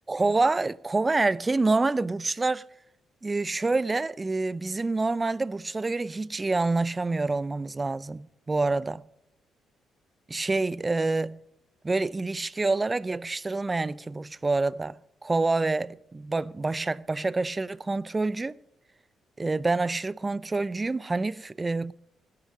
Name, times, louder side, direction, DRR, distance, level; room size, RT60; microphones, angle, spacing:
voice 1, 0.1-2.6 3.2-9.0 10.3-11.4 11.8-18.6 19.4-21.9, right 3 dB, 20° right, 0.5 m, -27 dB
17.0 x 10.5 x 5.2 m
cardioid pair, 90°, 0 cm